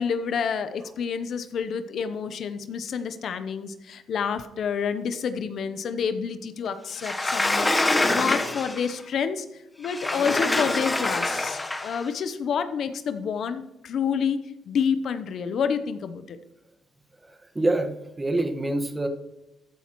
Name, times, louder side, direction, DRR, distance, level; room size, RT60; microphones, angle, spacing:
voice 1, 0.0-16.4, left 6 dB, 65° left, 11 dB, 0.8 m, -29 dB
Sliding door, 7.0-8.9 9.8-12.0, left 2 dB, 15° left, 1.1 m, -25 dB
voice 2, 17.5-19.1, right 2 dB, 20° right, 6 dB, 1.5 m, -25 dB
14.5 x 10.0 x 3.1 m, 0.93 s
cardioid pair, 90°, 0 cm